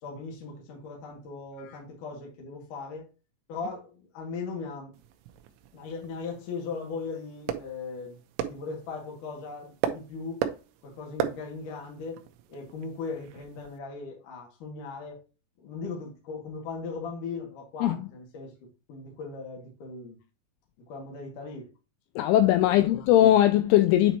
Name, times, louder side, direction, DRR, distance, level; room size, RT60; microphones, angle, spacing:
voice 1, 0.0-3.1 3.5-4.9 5.7-10.4 10.8-12.2 12.5-15.2 15.6-18.5 18.9-20.2 20.9-21.7 22.7-23.1, left 4 dB, 55° left, 2.5 m, -38 dB
sound 1, 4.9-13.8, right 11 dB, 80° right, 2.6 m, -37 dB
voice 2, 22.2-24.2, left 13 dB, 90° left, 2.7 m, -20 dB
9.2 x 4.5 x 2.8 m
omnidirectional pair, 6.0 m